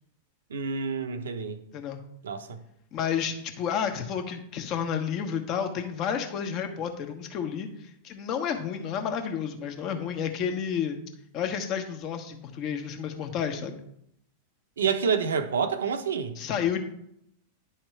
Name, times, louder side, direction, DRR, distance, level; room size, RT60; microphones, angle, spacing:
voice 1, 0.5-1.6 2.2-2.6 14.8-16.4, right 6 dB, 80° right, 0.8 m, -28 dB
voice 2, 2.9-11.0 11.3-13.8 16.4-16.8, left 7 dB, 45° left, 1.2 m, -31 dB
10.5 x 3.5 x 4.6 m
hypercardioid pair, 105°, 0 cm